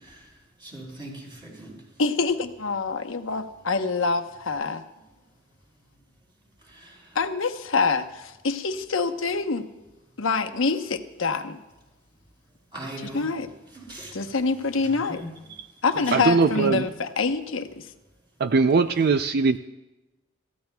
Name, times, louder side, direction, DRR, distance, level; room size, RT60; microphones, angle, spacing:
voice 1, 0.6-1.7 6.8-6.9 12.7-13.3 13.8-14.1 15.0-15.3 15.9-16.7, right 1 dB, 25° right, -4 dB, 5.4 m, -38 dB
voice 2, 2.0-4.8 7.1-9.7 10.2-11.6 13.0-13.5 14.1-15.2 15.8-17.9, left 4 dB, 75° left, 6 dB, 1.0 m, -26 dB
voice 3, 16.1-16.9 18.4-19.6, right 4 dB, 50° right, 10 dB, 0.4 m, -21 dB
27.5 x 15.0 x 2.3 m, 1.1 s
head